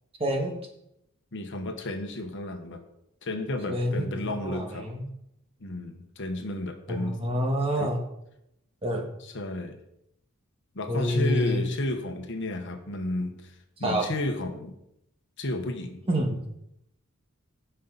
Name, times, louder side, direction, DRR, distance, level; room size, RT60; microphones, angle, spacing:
voice 1, 0.2-0.6 3.7-5.1 6.9-8.0 8.8-9.0 10.9-11.7 13.8-14.1 16.1-16.4, equal, 25° right, 1 dB, 1.7 m, -27 dB
voice 2, 1.3-2.8 3.2-4.9 5.6-7.2 7.8-8.0 9.2-9.8 10.7-14.8 15.4-16.0, left 1 dB, 60° left, 5 dB, 1.2 m, -32 dB
16.5 x 5.6 x 4.1 m, 0.80 s
head